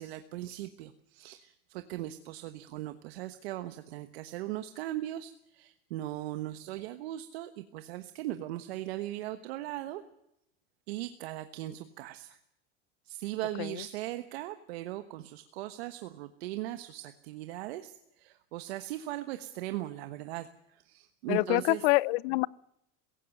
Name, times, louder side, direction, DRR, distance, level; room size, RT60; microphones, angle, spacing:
voice 1, 0.0-10.0 10.9-12.4 13.0-21.8, right 14 dB, 85° right, 1.3 m, -39 dB
voice 2, 21.3-22.5, left 22 dB, 75° left, 0.7 m, -26 dB
17.0 x 16.5 x 9.1 m
supercardioid pair, 130°, 30 cm